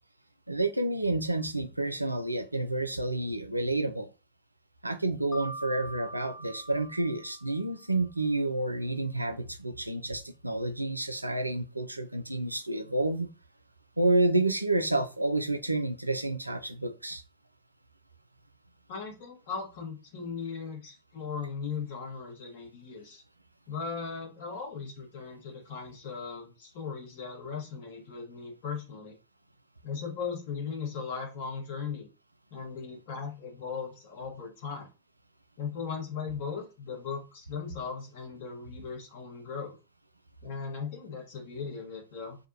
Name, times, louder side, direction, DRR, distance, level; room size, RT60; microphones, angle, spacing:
voice 1, 0.5-4.1 4.8-13.3 14.0-17.2, right 2 dB, 85° right, 0.3 m, -29 dB
Mallet percussion, 5.3-8.1, right 1 dB, 10° left, 1.2 m, -44 dB
voice 2, 18.9-23.2 23.7-29.1 29.8-32.1 32.5-34.9 35.6-39.8 40.4-42.4, left 5 dB, 50° left, 1.2 m, -38 dB
3.4 x 2.2 x 2.7 m
figure-of-eight pair, 90°, 0 cm